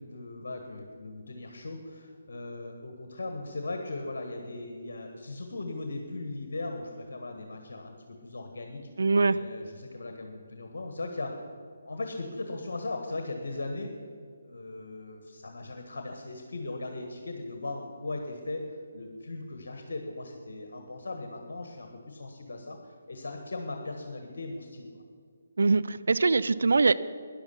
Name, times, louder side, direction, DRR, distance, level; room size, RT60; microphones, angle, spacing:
voice 1, 0.0-8.9 9.3-11.5 11.8-13.9 14.4-25.0, left 2 dB, 60° left, 4 dB, 1.4 m, -38 dB
voice 2, 9.0-9.4 25.6-27.0, right 4 dB, 65° right, 14 dB, 0.4 m, -23 dB
13.5 x 10.5 x 5.8 m, 2.2 s
figure-of-eight pair, 145°, 0 cm